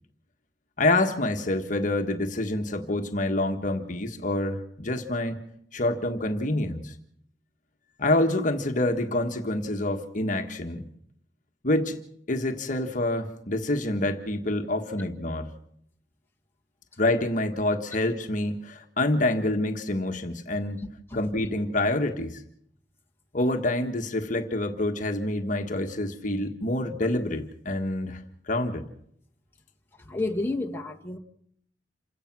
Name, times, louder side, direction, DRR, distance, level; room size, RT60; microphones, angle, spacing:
voice 1, 0.8-5.4 5.7-6.9 8.0-10.9 11.6-12.0 12.3-15.5 17.0-20.8 21.1-22.4 23.3-28.9, left 1 dB, 45° left, 5 dB, 1.5 m, -27 dB
voice 2, 30.1-31.2, left 2 dB, 15° left, 1 dB, 1.9 m, -30 dB
28.0 x 17.0 x 6.2 m, 0.70 s
head